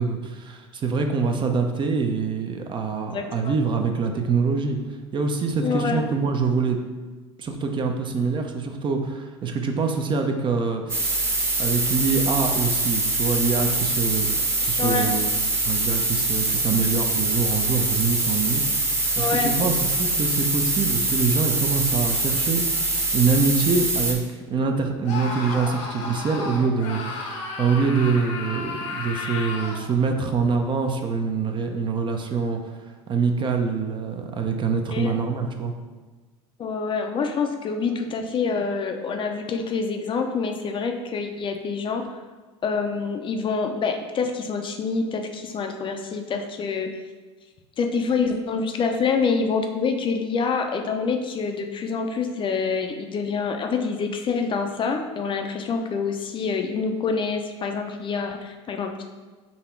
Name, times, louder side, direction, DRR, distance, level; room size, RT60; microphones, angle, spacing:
voice 1, 0.0-6.8 7.4-11.3 11.6-14.3 14.6-18.9 19.2-32.7 33.1-35.7, right 5 dB, 35° right, 4 dB, 0.6 m, -25 dB
voice 2, 3.1-3.5 5.6-6.0 14.8-15.2 19.2-19.7 25.7-25.8 34.9-35.1 36.6-42.0 42.6-46.9 47.8-59.0, left 5 dB, 35° left, 4 dB, 0.5 m, -26 dB
sound 1, 10.9-24.1, right 2 dB, 15° right, 1.0 m, -24 dB
Screaming, 25.0-29.9, left 3 dB, 70° left, 0.9 m, -33 dB
4.0 x 2.8 x 4.5 m, 1.3 s
hypercardioid pair, 85°, 15 cm